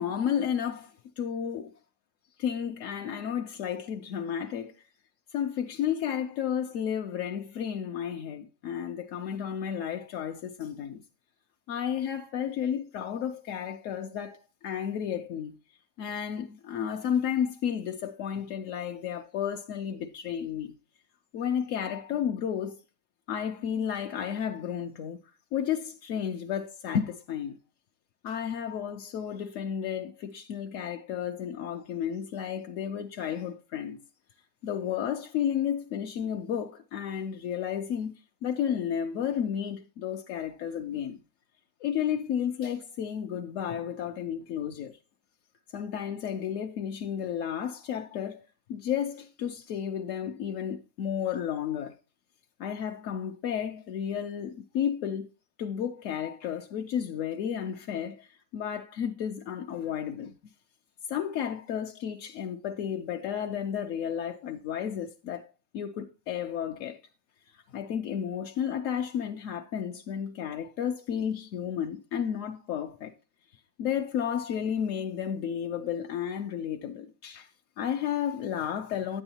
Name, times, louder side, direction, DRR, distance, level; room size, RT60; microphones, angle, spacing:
voice 1, 0.0-1.7 2.4-4.8 5.3-11.0 11.7-15.6 16.0-20.7 21.3-22.8 23.3-25.2 25.5-27.6 28.2-34.0 34.6-38.1 38.4-41.2 41.8-45.0 45.7-48.4 48.7-52.0 52.6-55.3 55.6-60.3 61.1-67.0 67.5-73.1 73.8-77.5 77.8-79.2, left 8 dB, 70° left, 0.8 m, -32 dB
9.5 x 8.7 x 2.8 m
omnidirectional pair, 1.8 m